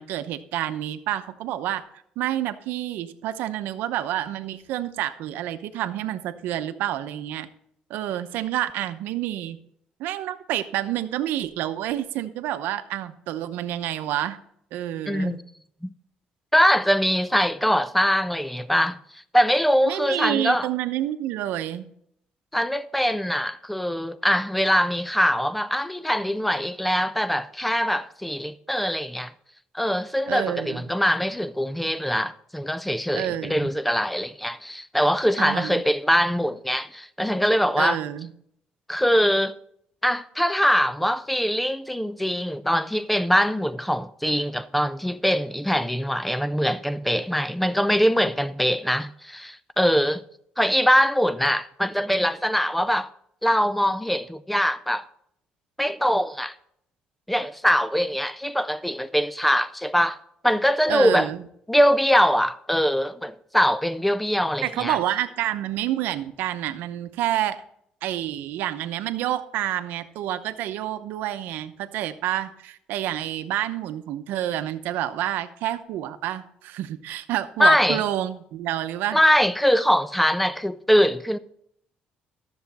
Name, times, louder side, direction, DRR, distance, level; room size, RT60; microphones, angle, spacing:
voice 1, 0.0-1.8 2.2-7.5 7.9-9.6 10.0-14.4 14.7-15.4 19.9-21.9 30.3-30.8 33.1-33.7 35.4-35.8 37.8-38.3 60.9-61.4 64.6-67.6 68.0-79.2, right 12 dB, 85° right, 0.7 m, -28 dB
voice 2, 15.1-15.4 15.8-15.9 16.5-19.0 19.3-20.7 22.5-29.3 29.7-38.0 38.9-39.5 40.0-50.2 50.6-53.1 53.4-55.1 55.8-56.5 57.3-60.2 60.4-61.3 61.7-65.0 77.6-78.0 79.1-81.4, equal, 5° left, 0.4 m, -22 dB
13.0 x 7.0 x 4.1 m
cardioid pair, 145°, 3 cm